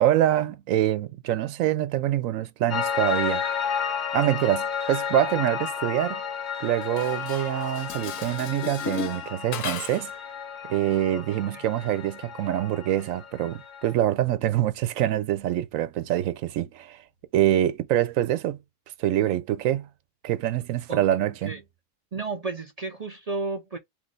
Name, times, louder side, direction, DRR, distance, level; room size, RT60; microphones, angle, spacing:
voice 1, 0.0-3.4 4.1-6.2 6.6-10.1 10.7-17.0 17.3-18.6 19.0-19.9 20.2-21.6, right 12 dB, 85° right, 1.0 m, -25 dB
Piano, 2.7-13.9, left 7 dB, 50° left, 0.6 m, -32 dB
Dishes pots and pans, 6.8-10.2, left 8 dB, 90° left, 1.2 m, -36 dB
voice 2, 11.1-11.6 20.9-21.0 21.5-21.6 22.1-23.8, right 3 dB, 50° right, 0.4 m, -33 dB
3.2 x 3.1 x 3.9 m
omnidirectional pair, 1.4 m